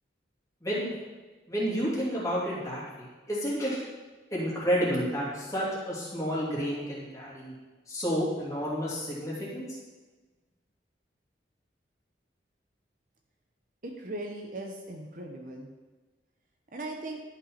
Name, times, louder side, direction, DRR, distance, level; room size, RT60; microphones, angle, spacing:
voice 1, 0.6-0.9 1.5-3.8 4.3-7.5 7.9-9.7, equal, 15° left, -6 dB, 2.8 m, -30 dB
voice 2, 13.8-15.7 16.7-17.2, right 2 dB, 45° right, 2 dB, 1.0 m, -38 dB
11.5 x 5.5 x 5.8 m, 1.3 s
head